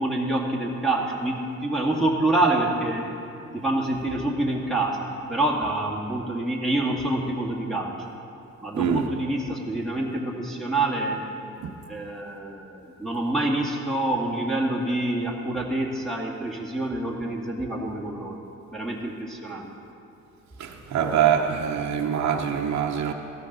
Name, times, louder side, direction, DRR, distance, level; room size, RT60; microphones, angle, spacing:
voice 1, 0.0-3.1 3.5-7.9 8.6-11.2 11.9-18.4 18.7-19.7, right 2 dB, ahead, -4 dB, 1.9 m, -26 dB
voice 2, 8.7-9.0 11.6-11.7 20.6-23.1, right 8 dB, 65° right, 1 dB, 1.0 m, -24 dB
16.5 x 13.0 x 4.0 m, 2.6 s
cardioid pair, 90°, 30 cm